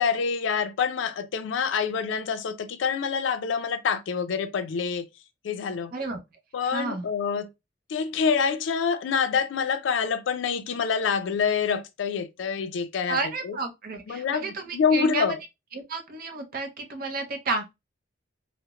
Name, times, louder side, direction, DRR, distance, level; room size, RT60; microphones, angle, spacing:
voice 1, 0.0-5.1 5.4-5.9 6.5-7.5 7.9-13.6 14.1-15.4, left 6 dB, 80° left, 0.4 m, -26 dB
voice 2, 6.6-7.1 13.1-15.3 15.7-17.8, right 3 dB, 50° right, 0.5 m, -31 dB
2.3 x 2.0 x 2.8 m
head